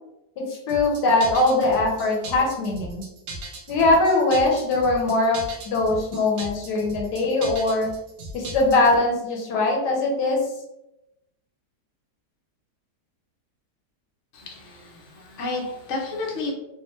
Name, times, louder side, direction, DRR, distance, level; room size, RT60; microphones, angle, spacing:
voice 1, 0.4-3.0 3.7-7.9 8.3-10.4, left 2 dB, 80° left, 0 dB, 1.3 m, -21 dB
sound 1, 0.7-9.0, right 1 dB, 65° right, 1.1 m, -37 dB
voice 2, 14.3-16.5, left 3 dB, 55° left, -1 dB, 0.9 m, -31 dB
3.4 x 2.5 x 3.0 m, 0.91 s
omnidirectional pair, 1.9 m